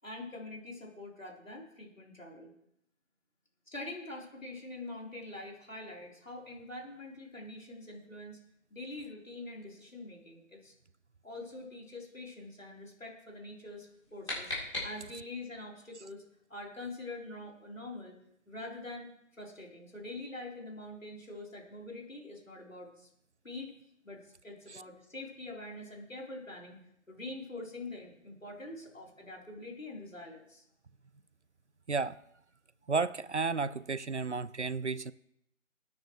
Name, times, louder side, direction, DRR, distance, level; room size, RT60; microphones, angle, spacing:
voice 1, 0.0-2.5 3.7-8.4 8.7-10.7 11.2-14.5 14.8-16.2 16.5-18.2 18.5-19.1 19.4-23.1 23.4-23.8 24.0-26.8 27.1-30.6, left 2 dB, 75° left, 4.0 m, -44 dB
sound 1, 13.8-15.4, left 2 dB, 25° left, 3.8 m, -39 dB
voice 2, 32.9-35.1, right 4 dB, 60° right, 0.5 m, -32 dB
20.5 x 9.5 x 3.1 m
figure-of-eight pair, 165°, 40 cm